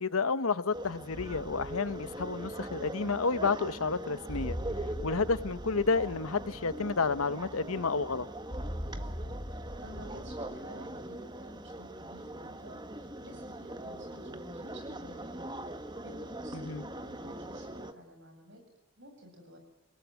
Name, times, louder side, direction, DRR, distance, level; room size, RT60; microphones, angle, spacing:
voice 1, 0.0-4.6 5.0-8.3 16.5-16.8, left 4 dB, 85° left, 15 dB, 1.1 m, -30 dB
sound 1, 0.7-17.9, right 1 dB, 20° right, 1.4 m, -42 dB
sound 2, 1.1-10.5, equal, 20° left, 4.8 m, -42 dB
voice 2, 8.9-15.4 16.0-18.6 19.0-19.6, equal, 55° right, 4 dB, 7.9 m, -52 dB
29.0 x 18.0 x 9.5 m, 0.71 s
head